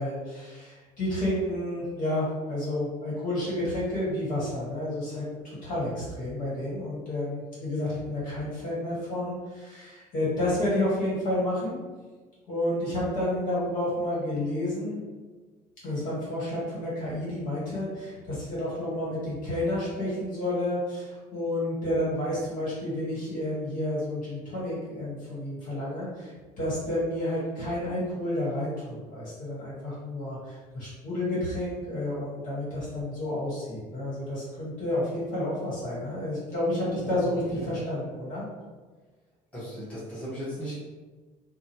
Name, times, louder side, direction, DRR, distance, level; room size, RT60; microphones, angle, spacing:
voice 1, 0.0-11.8 12.5-15.0 15.8-26.3 26.6-38.4, left 1 dB, 60° left, -7 dB, 1.4 m, -30 dB
voice 2, 37.0-37.7 39.5-40.7, equal, 10° left, -10 dB, 1.1 m, -37 dB
2.8 x 2.2 x 2.8 m, 1.3 s
cardioid pair, 145°, 15 cm